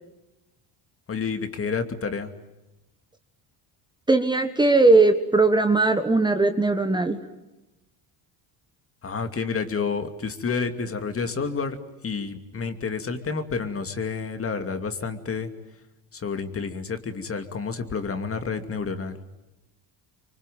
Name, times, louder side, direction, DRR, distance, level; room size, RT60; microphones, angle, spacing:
voice 1, 1.1-2.3 9.0-11.8 12.0-15.5 16.1-19.2, left 5 dB, 30° left, 8 dB, 2.6 m, -29 dB
voice 2, 4.1-7.2, right 3 dB, 10° right, 7 dB, 1.4 m, -19 dB
25.5 x 24.5 x 9.4 m, 1.0 s
cardioid pair, 110°, 44 cm